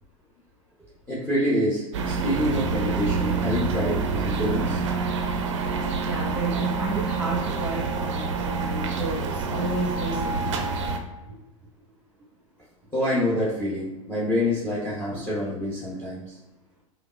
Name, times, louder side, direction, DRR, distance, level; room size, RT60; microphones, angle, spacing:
voice 1, 1.1-4.8 12.9-16.4, left 1 dB, 10° left, -7 dB, 0.9 m, -26 dB
sound 1, 1.9-11.0, right 4 dB, 60° right, 0.5 m, -27 dB
voice 2, 5.4-10.7 11.2-11.3, right 2 dB, 5° right, -5 dB, 1.4 m, -32 dB
5.0 x 2.1 x 2.4 m, 1.0 s
figure-of-eight pair, 90°, 18 cm